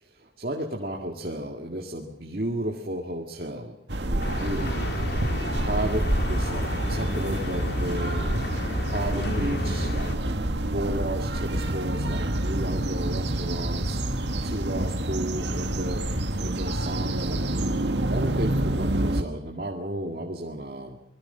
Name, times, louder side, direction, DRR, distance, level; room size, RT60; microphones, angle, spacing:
voice 1, 0.0-4.9 5.6-8.3 8.8-10.4 10.7-14.0 14.4-16.1 16.4-17.4 18.1-21.0, right 1 dB, 55° right, 1 dB, 2.1 m, -33 dB
sound 1, 3.9-19.2, right 1 dB, 80° right, 1.8 m, -28 dB
sound 2, 4.2-10.2, left 1 dB, 70° left, 2.8 m, -31 dB
sound 3, 9.2-15.1 15.6-16.0, left 1 dB, 85° left, 3.7 m, -44 dB
27.5 x 21.0 x 5.7 m, 0.91 s
head